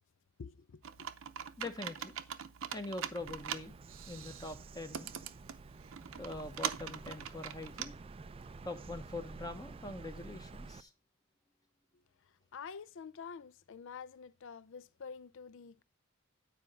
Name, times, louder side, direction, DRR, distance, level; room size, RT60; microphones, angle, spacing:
voice 1, 0.4-1.1 12.5-15.8, left 6 dB, 60° left, 0.5 m, -48 dB
Computer keyboard, 0.8-7.9, right 8 dB, 65° right, 0.7 m, -43 dB
voice 2, 1.6-2.1 2.7-3.7 4.1-5.1 6.2-8.0 8.6-10.9, left 2 dB, 15° left, 0.9 m, -43 dB
Bird vocalization bird call bird song, 3.2-10.8, right 3 dB, 25° right, 0.3 m, -50 dB
9.6 x 4.9 x 5.3 m
head